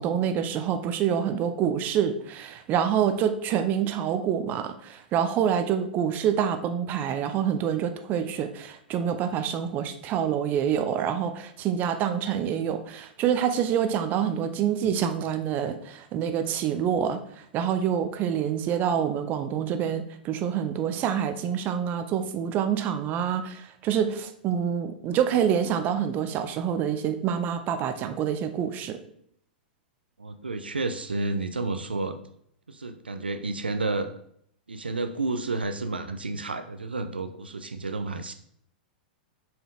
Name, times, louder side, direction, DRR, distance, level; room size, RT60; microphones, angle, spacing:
voice 1, 0.0-29.0, right 8 dB, 35° right, 9 dB, 0.7 m, -27 dB
voice 2, 30.2-32.2 32.7-34.1 34.7-38.3, right 3 dB, 85° right, 8 dB, 0.5 m, -31 dB
6.7 x 4.4 x 3.7 m, 0.68 s
figure-of-eight pair, 100°, 5 cm